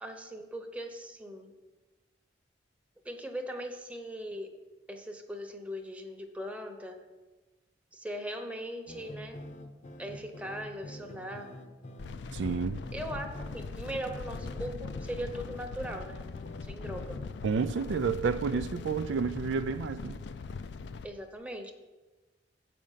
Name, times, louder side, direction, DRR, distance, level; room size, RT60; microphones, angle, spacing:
voice 1, 0.0-1.5 3.0-4.5 4.9-7.0 7.9-9.4 10.0-11.5 12.9-13.3 13.5-16.3 16.7-17.2 21.0-21.7, equal, 10° right, 0.9 m, -39 dB
sound 1, 8.9-17.2, left 1 dB, 45° left, 0.7 m, -47 dB
sound 2, 12.0-21.1, left 4 dB, 70° left, 0.4 m, -41 dB
voice 2, 12.3-12.8 17.4-20.2, right 5 dB, 90° right, 0.4 m, -30 dB
7.7 x 5.1 x 7.3 m
head